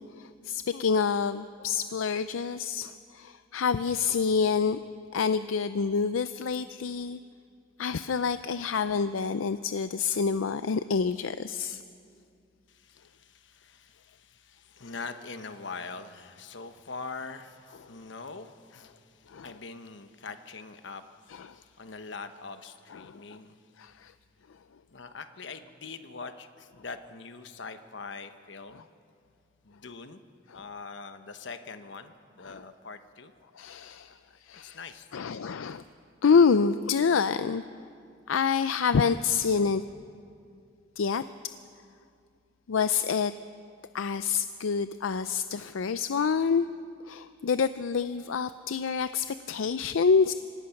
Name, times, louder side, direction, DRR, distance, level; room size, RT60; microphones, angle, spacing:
voice 1, 0.0-4.8 5.1-7.2 7.8-11.8 19.3-19.5 21.3-21.4 23.0-23.2 23.8-24.1 32.5-32.6 33.6-34.1 34.5-34.8 35.1-35.8 36.2-37.6 38.3-39.8 41.0-41.2 42.7-43.3 43.9-46.7 47.1-50.3, left 5 dB, 90° left, 12 dB, 0.5 m, -27 dB
voice 2, 12.7-23.6 24.9-28.9 29.6-30.2 30.5-33.3 34.3-34.4 34.6-35.1, left 4 dB, 65° left, 9 dB, 1.1 m, -43 dB
25.5 x 19.0 x 5.9 m, 2.4 s
head